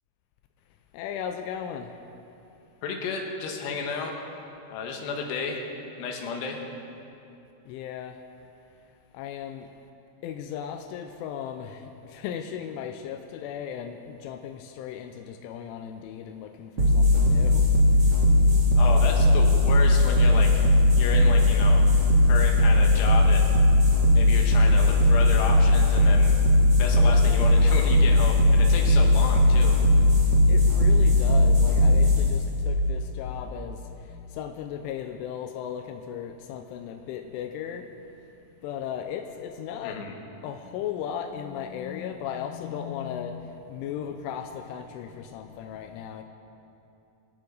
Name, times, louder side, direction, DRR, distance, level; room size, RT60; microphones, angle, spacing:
voice 1, 0.9-1.9 7.7-8.2 9.1-9.7 10.2-17.6 30.5-33.8 34.3-37.9 38.6-40.0 40.4-46.2, left 8 dB, 85° left, 6 dB, 3.2 m, -36 dB
voice 2, 2.8-4.1 4.7-5.6 6.0-6.6 18.8-20.7 21.0-21.8 22.3-23.4 24.1-26.3 26.8-29.8 39.8-40.1, left 4 dB, 70° left, 1 dB, 3.4 m, -32 dB
sound 1, 16.8-33.8, left 1 dB, 40° right, 1.7 m, -19 dB
26.5 x 10.5 x 4.0 m, 2.8 s
omnidirectional pair, 5.4 m